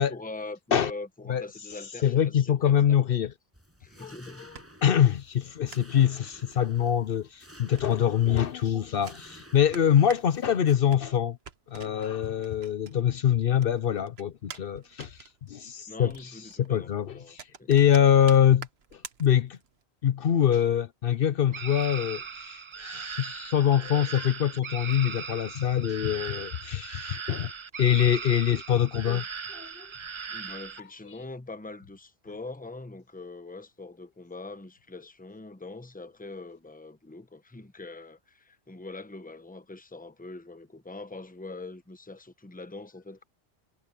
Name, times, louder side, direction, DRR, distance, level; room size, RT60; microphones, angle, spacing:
voice 1, 0.0-3.0 3.8-4.5 15.9-17.7 29.0-29.2 30.3-43.2, left 3 dB, 10° left, 0.9 m, -43 dB
voice 2, 2.0-3.3 4.0-4.1 4.8-11.4 11.7-15.2 15.5-16.1 16.6-18.7 18.9-19.6 20.0-27.5 27.8-29.2 29.5-29.9, left 9 dB, 65° left, 0.8 m, -24 dB
sound 1, 3.5-10.8, equal, 15° right, 7.1 m, -53 dB
sound 2, 4.2-13.3 13.6-19.8, right 6 dB, 80° right, 1.3 m, -49 dB
sound 3, 21.5-30.8, right 6 dB, 40° right, 0.5 m, -39 dB
omnidirectional pair, 1.0 m